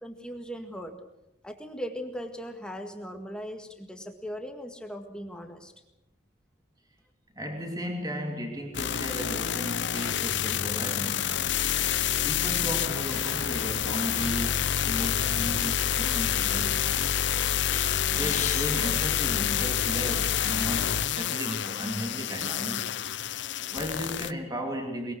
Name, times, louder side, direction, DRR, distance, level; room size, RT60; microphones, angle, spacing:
voice 1, 0.0-0.9 1.4-5.7, equal, 5° left, 1.8 m, -38 dB
voice 2, 7.3-11.4 12.2-16.9 18.1-23.0 23.7-25.1, equal, 20° right, 2.8 m, -35 dB
sound 1, 8.7-24.3, left 9 dB, 65° left, 0.7 m, -28 dB
sound 2, 17.7-20.1 20.9-21.0 21.3-21.5 22.4-22.5 23.0-24.2, left 9 dB, 40° left, 1.2 m, -39 dB
22.5 x 21.5 x 6.4 m
head